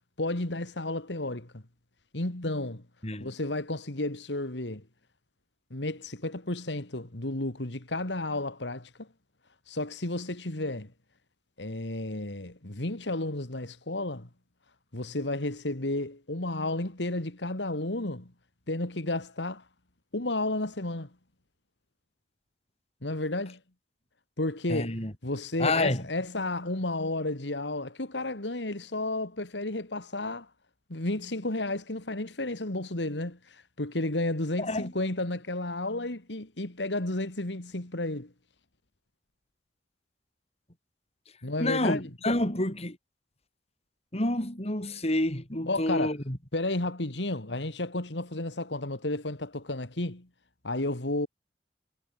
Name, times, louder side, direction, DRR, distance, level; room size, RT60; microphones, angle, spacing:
voice 1, 0.2-1.6 2.1-2.8 3.2-4.8 5.7-9.1 9.7-10.9 11.6-14.3 14.9-18.3 18.7-19.6 20.1-21.1 23.0-23.6 24.4-25.0 25.2-30.5 30.9-38.3 41.4-42.1 45.7-46.1 46.5-50.3 50.6-51.3, left 2 dB, 85° left, 2.7 m, -32 dB
voice 2, 3.0-3.3 24.7-25.1 25.6-26.0 34.6-34.9 41.6-43.0 44.1-46.4, left 1 dB, 35° left, 4.6 m, -28 dB
head